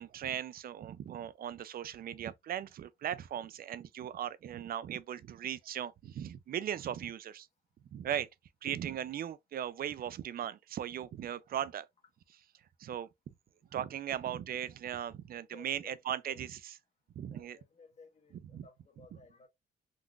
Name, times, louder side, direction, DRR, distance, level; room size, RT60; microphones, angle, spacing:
voice 1, 0.0-7.5 7.9-8.3 8.6-11.9 12.8-13.1 13.7-16.8 17.2-17.6 18.5-18.7, right 10 dB, 50° right, 0.4 m, -38 dB
voice 2, 14.0-14.4 15.3-16.4 17.3-19.5, left 4 dB, 35° left, 0.9 m, -58 dB
3.7 x 2.4 x 2.2 m
cardioid pair, 90°, 20 cm